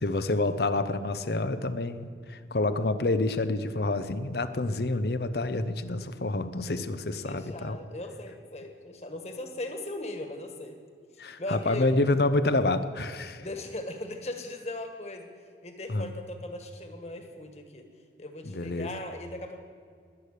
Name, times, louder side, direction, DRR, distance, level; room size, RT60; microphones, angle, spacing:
voice 1, 0.0-7.8 11.2-13.5 15.9-16.1 18.4-18.9, left 2 dB, 65° left, 11 dB, 0.8 m, -28 dB
voice 2, 7.2-10.8 11.4-12.0 13.4-15.3 15.6-17.9 18.2-19.6, left 1 dB, 40° left, 5 dB, 1.6 m, -38 dB
20.5 x 8.4 x 6.7 m, 2.3 s
head